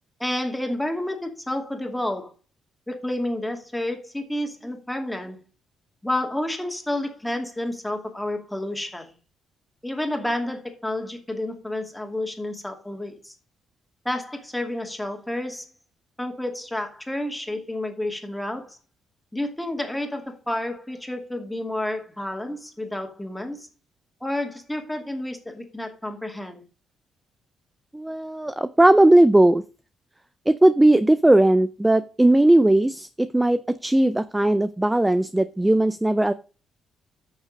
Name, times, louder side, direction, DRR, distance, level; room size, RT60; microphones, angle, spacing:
voice 1, 0.2-2.3 2.9-5.4 6.0-9.1 9.8-13.3 14.0-15.7 16.2-18.8 19.3-23.7 24.2-26.6, left 1 dB, 5° left, 3 dB, 2.5 m, -30 dB
voice 2, 27.9-29.6 30.5-36.3, right 1 dB, 10° right, 13 dB, 0.4 m, -18 dB
9.6 x 6.5 x 5.2 m, 0.35 s
cardioid pair, 90°, 0 cm